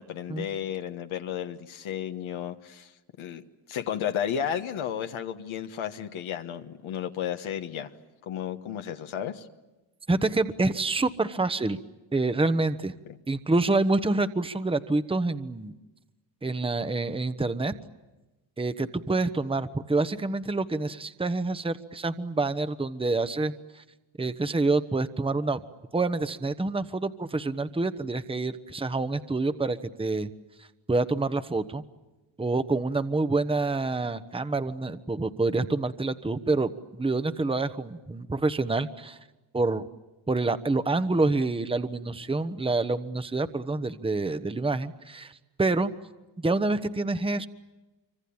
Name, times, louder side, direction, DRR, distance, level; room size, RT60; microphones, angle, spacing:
voice 1, 0.0-2.9 3.2-3.4 3.7-7.9 8.3-9.5 13.1-13.2, left 9 dB, 75° left, 6 dB, 1.5 m, -33 dB
voice 2, 10.1-11.8 12.1-12.9 13.3-15.7 16.4-17.7 18.6-23.8 24.2-25.6 25.9-30.3 30.9-31.8 32.4-39.2 39.5-39.9 40.3-45.3 45.6-45.9 46.4-47.5, right 3 dB, 10° right, 11 dB, 1.1 m, -27 dB
25.5 x 25.0 x 8.7 m, 1.1 s
cardioid pair, 70°, 49 cm